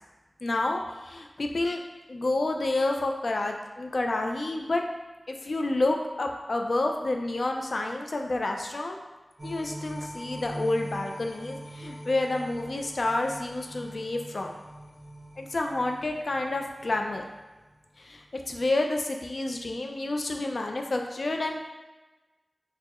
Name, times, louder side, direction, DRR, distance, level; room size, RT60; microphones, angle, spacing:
voice 1, 0.4-1.8 2.1-4.8 5.3-9.0 9.4-14.5 15.4-17.2 18.0-21.6, left 2 dB, 70° left, 3 dB, 0.3 m, -29 dB
sound 1, 9.4-17.8 18.2-18.3, right 1 dB, 40° right, 0.8 m, -43 dB
4.3 x 2.0 x 2.9 m, 1.2 s
wide cardioid pair, 55°, 0 cm